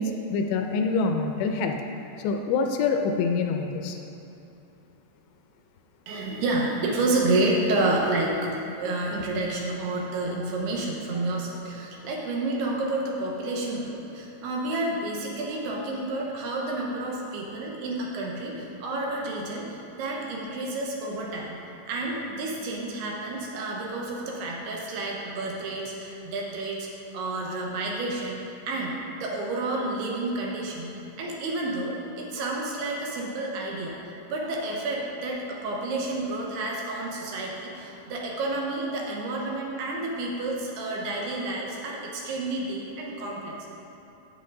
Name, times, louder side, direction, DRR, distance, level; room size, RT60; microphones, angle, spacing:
voice 1, 0.0-1.8 2.2-4.0, left 4 dB, 80° left, 4 dB, 2.7 m, -26 dB
voice 2, 6.1-21.6 21.9-26.9 27.1-34.0 34.3-43.7, right 2 dB, 75° right, -2 dB, 2.9 m, -30 dB
10.5 x 8.4 x 3.8 m, 2.8 s
omnidirectional pair, 5.1 m